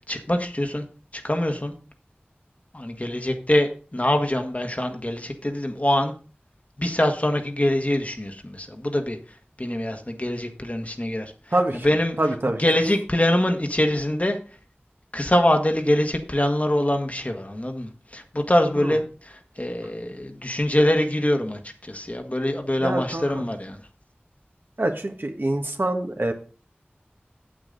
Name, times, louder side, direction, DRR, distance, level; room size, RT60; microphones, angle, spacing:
voice 1, 0.1-0.8 1.1-1.7 2.7-6.1 6.8-9.2 9.6-11.3 11.8-12.2 12.6-14.4 15.1-23.8, left 1 dB, 40° left, 4 dB, 1.4 m, -24 dB
voice 2, 11.5-11.9 12.2-12.6 18.8-19.0 22.8-23.4 24.8-26.3, right 1 dB, 65° right, 3 dB, 1.4 m, -25 dB
8.7 x 8.2 x 3.9 m, 0.37 s
wide cardioid pair, 40°, 4 cm